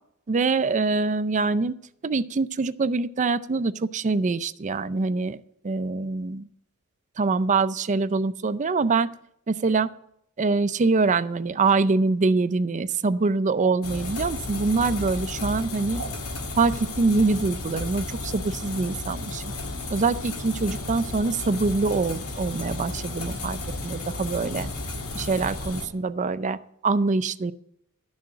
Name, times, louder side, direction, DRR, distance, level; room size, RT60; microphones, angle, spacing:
voice 1, 0.3-1.7 2.0-5.4 5.6-6.5 7.2-9.1 9.5-9.9 10.4-16.0 16.6-19.5 19.9-24.7 25.1-26.6 26.8-27.5, right 3 dB, 35° right, 14 dB, 0.5 m, -24 dB
sound 1, 13.6-13.8 15.9-16.2 17.0-17.1, right 5 dB, 70° right, 0.9 m, -39 dB
sound 2, 13.8-25.9, left 2 dB, 80° left, 1.6 m, -33 dB
12.0 x 6.4 x 7.5 m, 0.74 s
head